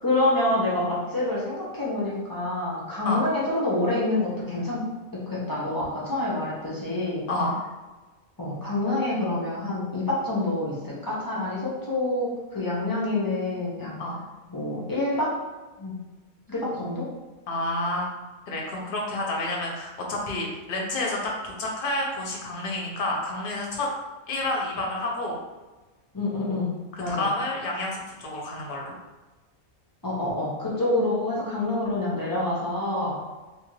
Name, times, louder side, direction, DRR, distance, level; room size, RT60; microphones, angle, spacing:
voice 1, 0.0-4.8 5.3-7.2 8.4-14.0 14.5-15.3 15.8-15.9 16.5-17.0 26.1-26.7 27.0-27.3 30.0-33.1, left 2 dB, 30° left, -7 dB, 0.4 m, -27 dB
voice 2, 17.5-18.1 18.5-23.9 24.3-25.4 26.9-28.9 33.1-33.2, left 2 dB, 50° left, -1 dB, 0.7 m, -29 dB
2.8 x 2.4 x 3.1 m, 1.2 s
omnidirectional pair, 1.4 m